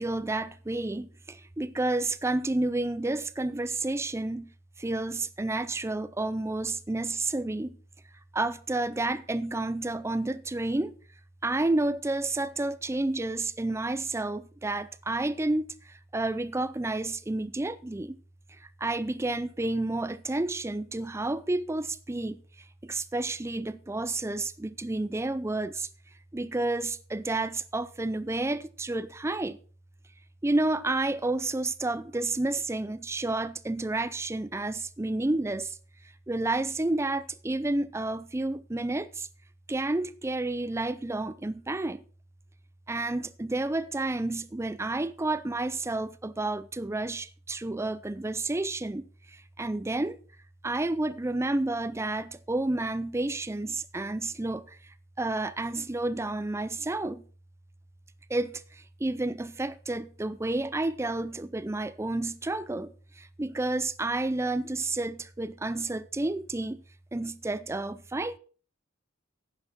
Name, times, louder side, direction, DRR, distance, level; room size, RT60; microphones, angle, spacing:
voice 1, 0.0-4.5 4.8-7.8 8.3-11.0 11.4-18.2 18.8-22.4 22.8-25.9 26.3-29.6 30.4-35.8 36.3-39.3 39.7-42.0 42.9-50.2 50.6-57.2 58.3-66.8 67.1-68.4, right 2 dB, 15° right, 0.5 m, -30 dB
11.0 x 9.3 x 4.1 m
head